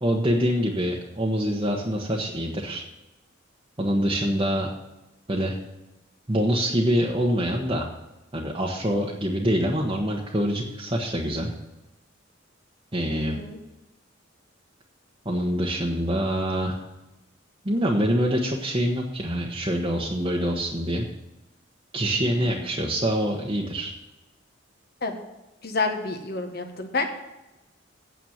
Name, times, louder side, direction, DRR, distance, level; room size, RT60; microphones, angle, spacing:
voice 1, 0.0-2.8 3.8-4.7 5.3-5.5 6.3-7.9 8.3-11.5 12.9-13.4 15.2-16.8 17.6-21.1 21.9-23.9, equal, 25° right, -3 dB, 1.1 m, -25 dB
voice 2, 13.3-13.6 22.1-22.6 25.0-25.2 25.6-27.0, left 3 dB, 50° left, 5 dB, 1.5 m, -29 dB
9.2 x 7.9 x 7.3 m, 1.0 s
head